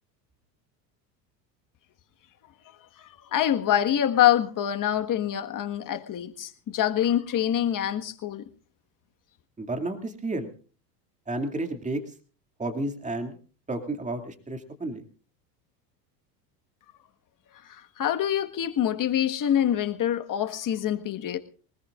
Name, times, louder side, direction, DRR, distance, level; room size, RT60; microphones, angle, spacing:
voice 1, 3.3-8.4 17.7-21.4, left 11 dB, 40° left, 1.6 m, -25 dB
voice 2, 9.6-10.5 11.3-12.0 12.6-13.4 13.7-15.0, right 2 dB, 15° right, 2.4 m, -31 dB
23.5 x 20.5 x 2.5 m
hypercardioid pair, 90°, 50 cm